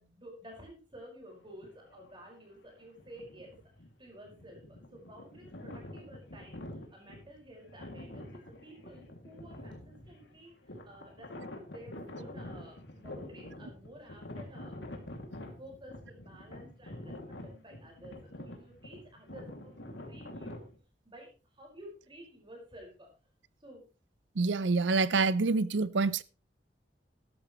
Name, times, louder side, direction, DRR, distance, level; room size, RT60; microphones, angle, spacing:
voice 1, 0.0-3.7 4.0-11.3 11.7-14.8 15.6-17.1 17.4-20.7 21.0-23.1 23.6-23.8, equal, 25° right, 5.1 m, -52 dB
sound 1, 1.5-2.2 2.8-20.8, left 1 dB, 90° left, 2.5 m, -46 dB
voice 2, 24.4-26.2, right 4 dB, 90° right, 0.6 m, -27 dB
13.5 x 12.0 x 3.1 m
head